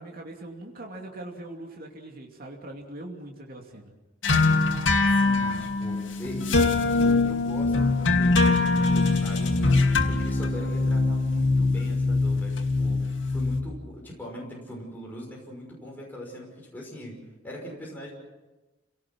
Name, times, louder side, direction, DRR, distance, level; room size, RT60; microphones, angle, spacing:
voice 1, 0.0-3.9, right 1 dB, 50° right, 0 dB, 2.8 m, -41 dB
sound 1, 4.2-13.6, left 3 dB, 85° left, 2.4 m, -23 dB
voice 2, 5.0-17.2 17.4-18.1, equal, 10° left, -3 dB, 5.9 m, -41 dB
30.0 x 18.5 x 6.1 m, 1.1 s
head